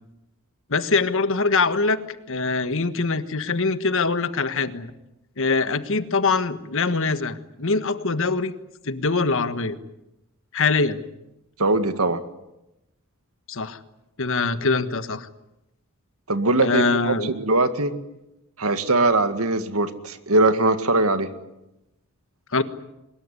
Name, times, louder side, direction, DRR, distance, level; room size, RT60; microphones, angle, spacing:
voice 1, 0.7-4.9 5.4-8.5 8.8-9.8 10.5-11.0 13.5-13.8 14.2-15.3 16.6-17.3 22.5-22.6, left 4 dB, 65° left, 11 dB, 1.5 m, -23 dB
voice 2, 11.6-12.2 16.3-17.9 18.6-21.3, right 2 dB, 75° right, 9 dB, 2.0 m, -21 dB
23.5 x 21.5 x 9.7 m, 0.91 s
head